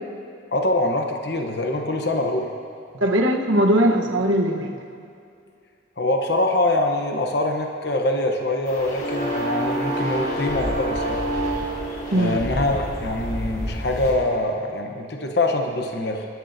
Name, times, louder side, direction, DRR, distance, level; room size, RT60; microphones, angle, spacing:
voice 1, 0.5-2.5 6.0-11.2 12.1-16.3, left 1 dB, 60° left, 3 dB, 0.9 m, -24 dB
voice 2, 3.0-4.7 12.1-12.4, equal, 90° right, 1 dB, 1.2 m, -19 dB
sound 1, 8.7-14.1, right 1 dB, 40° left, 1.9 m, -27 dB
21.5 x 11.5 x 2.7 m, 2.4 s
head